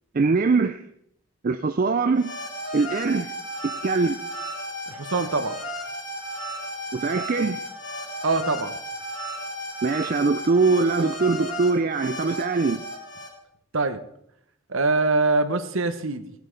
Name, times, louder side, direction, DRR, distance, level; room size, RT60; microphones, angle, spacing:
voice 1, 0.1-0.9 1.4-2.3 2.7-3.3 3.6-4.2 6.9-7.6 9.8-12.8, right 4 dB, 40° right, 0.4 m, -22 dB
sound 1, 2.1-13.3, equal, 55° left, 3.4 m, -34 dB
voice 2, 4.9-5.6 8.2-8.7 13.7-14.0 14.7-16.3, right 3 dB, 60° right, 1.0 m, -23 dB
16.0 x 8.0 x 5.2 m
head